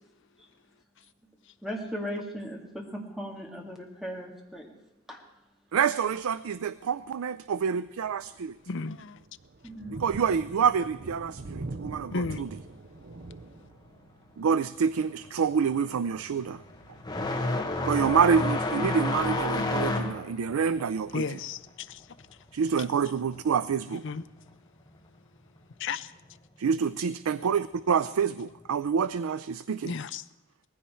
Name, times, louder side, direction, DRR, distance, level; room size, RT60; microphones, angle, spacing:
voice 1, 1.6-4.7 5.1-5.2 9.6-10.0, equal, ahead, 2.2 m, -37 dB
voice 2, 5.7-8.6 9.9-12.5 14.4-16.6 17.8-21.2 22.5-24.1 26.6-29.9, right 6 dB, 85° right, 0.4 m, -27 dB
Thunder, 6.1-6.4 7.0-7.1 7.6-18.1, right 3 dB, 50° right, 0.7 m, -45 dB
voice 3, 8.7-9.2 12.1-12.5 21.1-22.1 24.0-24.2 25.8-26.1 29.8-30.3, left 4 dB, 60° left, 0.6 m, -33 dB
sound 1, 14.5-14.8 15.1-23.4 23.7-24.7 25.7-25.8 26.7-26.8 28.5-28.6, left 2 dB, 20° left, 1.5 m, -31 dB
19.0 x 15.5 x 4.4 m
head